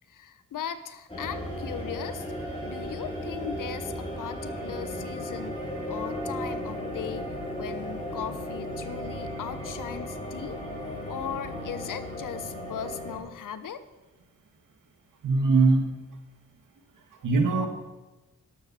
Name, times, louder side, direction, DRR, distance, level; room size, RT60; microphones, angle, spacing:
voice 1, 0.1-2.3 2.6-5.6 5.9-10.6 11.1-13.8, left 8 dB, 75° left, 12 dB, 1.0 m, -38 dB
sound 1, 1.1-13.2, equal, 20° left, 5.3 m, -35 dB
voice 2, 15.2-15.9 17.2-17.7, right 3 dB, 75° right, 4 dB, 2.0 m, -21 dB
12.0 x 12.0 x 4.3 m, 1.1 s
cardioid pair, 60°, 32 cm